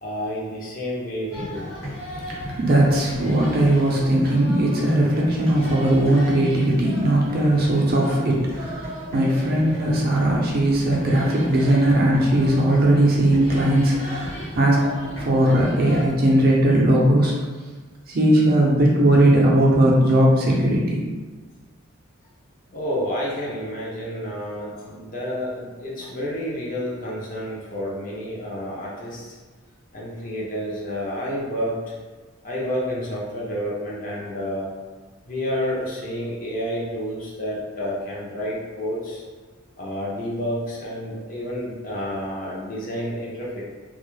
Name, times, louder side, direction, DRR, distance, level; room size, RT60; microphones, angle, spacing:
voice 1, 0.0-1.7 9.5-9.6 22.7-29.3 29.9-31.9 32.4-34.7 35.2-39.2 39.8-43.6, equal, 40° left, -5 dB, 0.5 m, -29 dB
sound 1, 1.3-16.4, equal, 70° left, 1.1 m, -35 dB
voice 2, 2.6-8.8 9.1-14.8 15.2-17.3 18.1-21.1, right 1 dB, 45° right, -3 dB, 0.5 m, -18 dB
2.3 x 2.0 x 3.0 m, 1.3 s
head